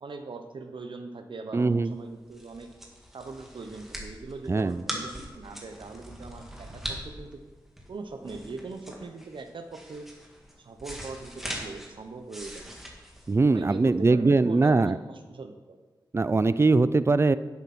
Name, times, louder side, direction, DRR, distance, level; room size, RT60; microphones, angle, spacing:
voice 1, 0.0-2.7 3.1-7.4 7.9-10.1 10.6-12.6 13.5-15.8, right 3 dB, 75° right, 6 dB, 1.0 m, -41 dB
voice 2, 1.5-1.9 4.5-4.8 13.3-15.0 16.1-17.4, right 3 dB, 30° right, 15 dB, 0.4 m, -21 dB
sound 1, 2.0-14.0, equal, 5° right, 2.0 m, -41 dB
10.5 x 8.2 x 4.3 m, 1.2 s
wide cardioid pair, 80°, 9 cm